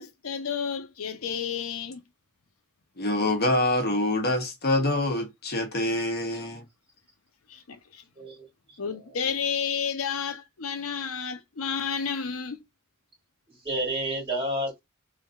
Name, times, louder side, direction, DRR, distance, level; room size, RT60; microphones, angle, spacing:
voice 1, 0.0-2.0 7.5-8.0 8.8-12.6, left 6 dB, 75° left, 0.7 m, -31 dB
voice 2, 3.0-6.6, left 1 dB, 50° left, 1.2 m, -25 dB
voice 3, 8.2-8.8 9.1-9.3 13.5-14.8, right 1 dB, 25° right, 2.8 m, -31 dB
3.8 x 3.2 x 2.5 m
head